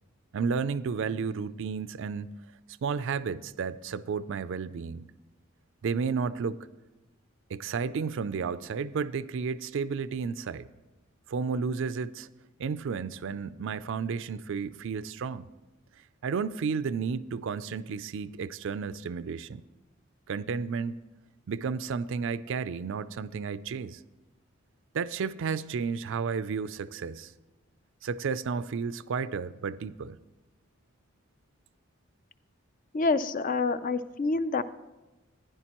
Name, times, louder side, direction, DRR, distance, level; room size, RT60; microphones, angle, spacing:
voice 1, 0.3-2.3 2.8-5.1 5.8-6.7 7.5-10.7 11.3-12.3 12.6-15.5 16.2-19.6 20.3-21.0 21.5-24.0 24.9-27.3 28.0-30.2, right 5 dB, 65° right, 0.4 m, -32 dB
voice 2, 32.9-34.6, left 3 dB, 40° left, 0.4 m, -27 dB
15.0 x 10.5 x 3.0 m
head